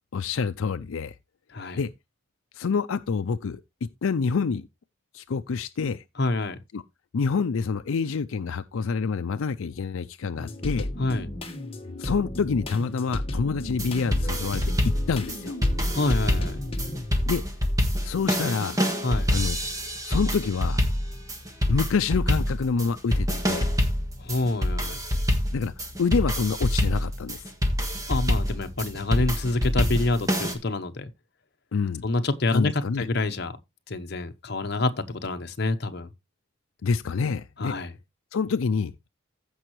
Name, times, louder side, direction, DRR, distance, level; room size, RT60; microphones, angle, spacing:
voice 1, 0.1-1.1 1.7-1.9 2.5-3.6 4.0-4.7 5.1-6.0 6.7-6.8 7.1-10.9 12.0-14.6 15.1-15.6 17.3-17.4 18.0-18.8 19.3-19.6 20.0-20.8 21.7-23.6 25.5-25.7 26.0-27.5 31.7-32.1 32.5-33.1 36.8-37.8 38.3-39.1, left 5 dB, 80° left, 0.5 m, -27 dB
voice 2, 6.2-6.6 11.0-11.3 15.9-16.6 19.0-19.3 24.2-25.0 28.1-31.1 32.0-33.6 33.9-36.1 37.6-37.9, left 2 dB, 50° left, 0.9 m, -27 dB
sound 1, 10.4-17.7 18.3-19.2 19.8-19.9 20.3-21.3, left 1 dB, 25° left, 1.4 m, -34 dB
sound 2, 13.7-30.5, equal, 15° right, 1.6 m, -26 dB
15.0 x 5.5 x 3.1 m
head